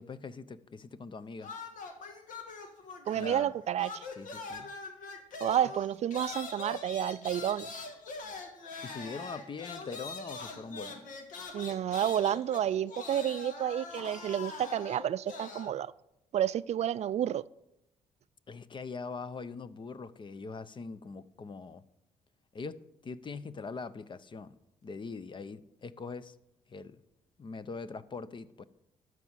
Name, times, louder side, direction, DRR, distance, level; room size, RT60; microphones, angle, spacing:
voice 1, 0.0-1.5 3.1-3.5 4.2-4.7 8.8-11.1 18.5-21.8 22.5-24.6 24.8-26.3 26.7-27.0 27.4-28.6, left 4 dB, 35° left, 0.7 m, -42 dB
sound 1, 1.4-3.5 3.8-15.7, left 3 dB, 75° left, 1.6 m, -43 dB
voice 2, 3.1-4.1 5.4-7.7 11.5-15.9 16.3-17.4, right 10 dB, 55° right, 0.4 m, -30 dB
13.0 x 4.8 x 8.1 m
supercardioid pair, 65°, 13 cm